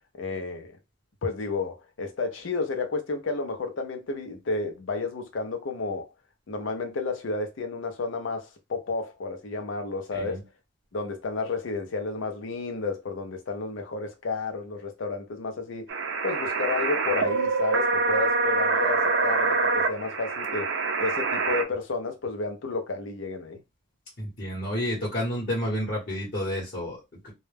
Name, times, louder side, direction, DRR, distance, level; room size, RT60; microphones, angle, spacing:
voice 1, 0.2-0.7 1.2-6.1 6.5-10.4 10.9-15.9 16.2-20.7 21.0-23.6, left 3 dB, 85° left, 0.5 m, -31 dB
sound 1, 15.9-21.6, right 4 dB, 70° right, 0.5 m, -25 dB
voice 2, 24.2-27.3, equal, 50° left, 0.9 m, -30 dB
2.2 x 2.0 x 3.2 m
head